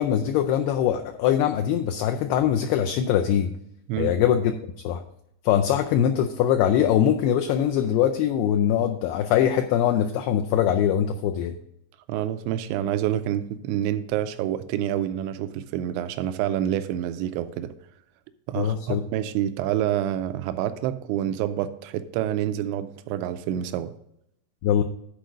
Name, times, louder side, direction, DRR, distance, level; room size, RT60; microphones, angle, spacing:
voice 1, 0.0-3.5 4.0-4.5 4.8-5.0 5.4-11.6 18.6-19.0 24.6-24.8, left 10 dB, 85° left, 5 dB, 2.2 m, -22 dB
voice 2, 12.1-17.7 18.5-23.9, right 11 dB, 90° right, 11 dB, 2.9 m, -27 dB
10.5 x 4.6 x 5.1 m, 0.75 s
omnidirectional pair, 5.1 m